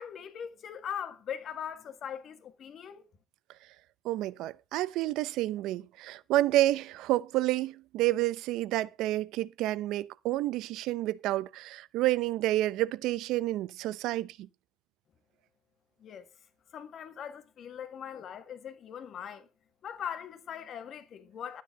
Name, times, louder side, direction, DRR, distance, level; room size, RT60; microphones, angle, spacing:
voice 1, 0.0-3.0 16.0-16.3 16.7-19.5 19.8-21.6, left 8 dB, 40° left, 1.7 m, -40 dB
voice 2, 4.0-14.4, right 15 dB, 70° right, 0.7 m, -29 dB
12.5 x 9.5 x 5.2 m
cardioid pair, 165°, 0 cm